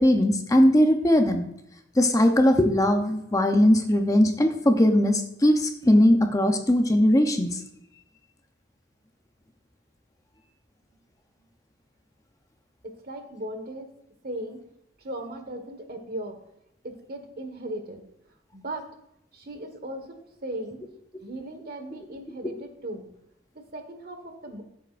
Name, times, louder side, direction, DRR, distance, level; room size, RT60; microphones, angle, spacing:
voice 1, 0.0-1.4 2.0-7.6, left 1 dB, 20° left, 5 dB, 0.8 m, -20 dB
voice 2, 12.8-13.9 14.2-14.6 15.0-16.4 16.8-18.1 18.5-18.9 19.3-20.8 21.2-23.1 23.7-24.6, right 1 dB, 55° right, 6 dB, 1.5 m, -37 dB
14.5 x 8.1 x 2.5 m, 0.79 s
head